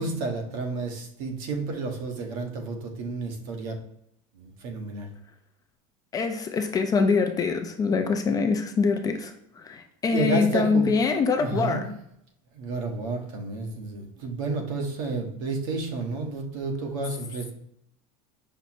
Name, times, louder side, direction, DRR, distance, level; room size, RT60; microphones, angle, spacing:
voice 1, 0.0-3.8 4.3-5.1 10.1-10.9 11.4-11.8 12.5-17.5, right 3 dB, 75° right, 3 dB, 1.1 m, -31 dB
voice 2, 6.1-11.9, left 4 dB, 20° left, 6 dB, 0.4 m, -24 dB
5.6 x 2.0 x 4.3 m, 0.73 s
supercardioid pair, 140°, 18 cm